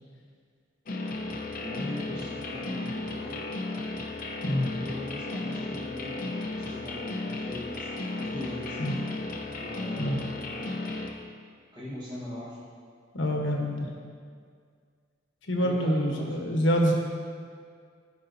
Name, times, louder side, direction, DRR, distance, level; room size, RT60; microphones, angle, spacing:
sound 1, 0.9-11.1, left 2 dB, 45° left, 0.7 m, -34 dB
voice 1, 1.6-3.4 4.5-7.9 8.2-8.9 9.6-10.8 11.7-12.7 15.6-16.5, left 1 dB, 20° right, -11 dB, 1.3 m, -40 dB
voice 2, 13.1-13.9 15.5-16.9, equal, 65° left, 1 dB, 1.1 m, -26 dB
13.5 x 5.2 x 2.7 m, 2.1 s
head